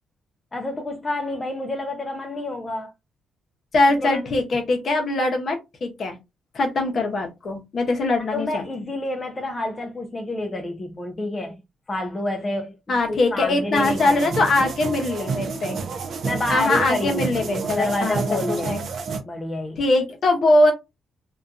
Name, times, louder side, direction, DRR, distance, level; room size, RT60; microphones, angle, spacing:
voice 1, 0.5-2.9 4.0-4.2 8.3-11.6 11.9-12.7 13.1-14.5 16.2-17.3 17.7-18.8 19.2-19.8, left 1 dB, 25° left, 0.4 m, -28 dB
voice 2, 3.7-6.2 6.5-8.6 12.9-15.8 16.5-18.8 19.8-20.7, left 2 dB, 45° left, 0.7 m, -22 dB
sound 1, 13.7-19.2, right 5 dB, 55° right, 0.4 m, -30 dB
2.6 x 2.2 x 2.4 m
cardioid pair, 125°, 0 cm